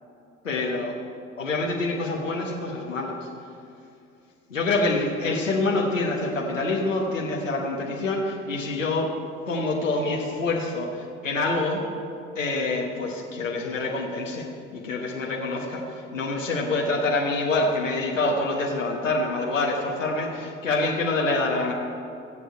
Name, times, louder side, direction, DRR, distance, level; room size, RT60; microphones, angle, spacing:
voice 1, 0.4-0.9 1.4-3.2 4.5-9.1 9.5-11.8 12.3-21.7, left 2 dB, 85° left, -1 dB, 1.3 m, -26 dB
21.0 x 8.1 x 4.6 m, 2.6 s
figure-of-eight pair, 55°, 38 cm